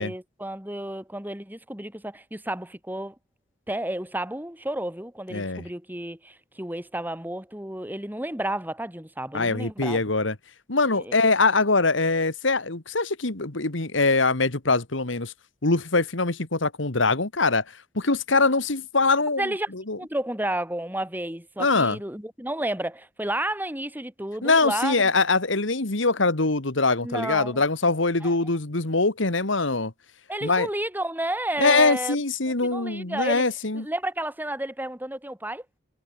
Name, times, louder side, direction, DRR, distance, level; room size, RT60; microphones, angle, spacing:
voice 1, 0.0-3.2 3.7-10.0 10.9-11.2 19.4-19.7 20.0-25.0 27.0-27.6 28.2-28.3 30.3-32.2 32.5-33.5 33.7-35.6, right 1 dB, 10° right, 3.7 m, -31 dB
voice 2, 5.3-5.6 9.3-10.4 10.7-15.3 15.6-17.6 18.0-19.4 19.7-20.0 21.6-22.0 24.4-29.9 30.4-30.7 31.6-33.9, left 3 dB, 65° left, 2.1 m, -23 dB
head